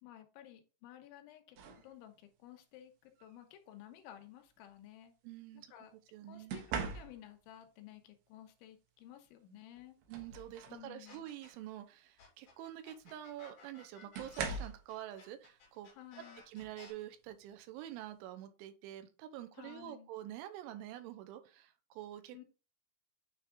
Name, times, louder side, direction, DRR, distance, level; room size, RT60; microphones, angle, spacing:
voice 1, 0.0-5.1 5.7-5.9 6.3-10.0 10.7-11.2 16.0-16.4 19.6-20.1 22.3-22.5, left 12 dB, 80° left, 3.3 m, -54 dB
sound 1, 1.6-1.9 3.2-3.4 6.5-7.5 9.2-9.3 9.8-10.9 11.3-11.6 13.0-13.1 14.1-14.9 16.6-16.8 17.3-17.6, right 5 dB, 70° right, 2.9 m, -42 dB
voice 2, 5.2-6.6 10.1-15.9 16.5-22.5, right 12 dB, 90° right, 3.1 m, -47 dB
sound 2, 11.0-11.7 12.2-16.9, left 4 dB, 50° left, 3.1 m, -57 dB
9.2 x 3.6 x 3.7 m
omnidirectional pair, 5.4 m